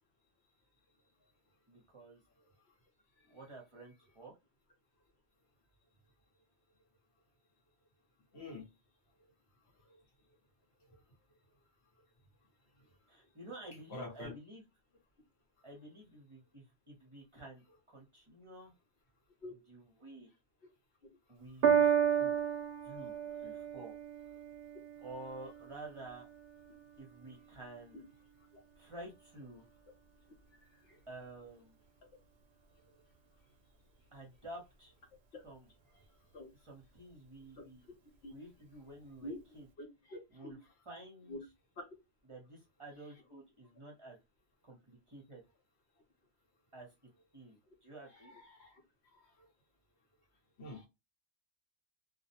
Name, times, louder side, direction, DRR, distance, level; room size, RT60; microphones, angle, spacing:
voice 1, 1.7-2.2 3.3-4.3 13.1-14.6 15.6-17.6 17.9-18.7 19.7-20.3 21.3-22.4 22.8-23.2 23.4-23.9 25.0-26.3 27.0-28.1 28.8-29.6 31.1-31.7 34.1-34.9 35.4-35.7 36.6-37.8 38.3-39.6 40.3-40.6 40.9-41.3 42.3-44.2 44.6-45.4 46.7-46.9 47.3-48.4, right 2 dB, 30° right, -2 dB, 0.7 m, -51 dB
voice 2, 8.3-8.7 13.9-14.3 19.4-19.5 27.9-28.0 30.8-31.0 35.3-35.4 36.3-36.5 37.6-37.7 38.2-38.3 39.2-39.4 39.8-40.5 41.3-41.4 41.8-41.9 48.1-48.8 49.1-49.3 50.6-50.9, left 2 dB, 70° left, 2 dB, 1.1 m, -46 dB
Piano, 21.6-28.2 29.0-29.1, right 8 dB, 65° right, 0.7 m, -34 dB
2.4 x 2.0 x 2.6 m, 0.23 s
omnidirectional pair, 1.1 m